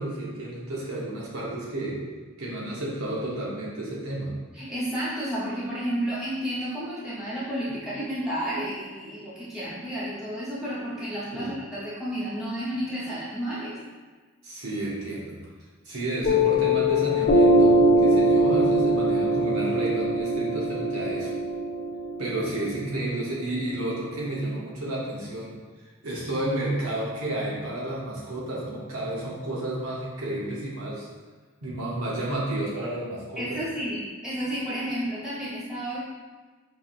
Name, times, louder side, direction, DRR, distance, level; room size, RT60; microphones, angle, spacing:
voice 1, 0.0-2.0 2.4-4.3 11.3-11.5 14.4-15.4 15.9-21.3 22.2-25.5 26.0-31.1 31.6-33.6, right 1 dB, 90° right, -5 dB, 1.0 m, -31 dB
voice 2, 4.5-13.8 33.4-36.0, equal, ahead, -11 dB, 1.1 m, -31 dB
Piano, 16.2-23.3, equal, 45° left, 0.4 m, -22 dB
4.7 x 2.8 x 2.5 m, 1.4 s
head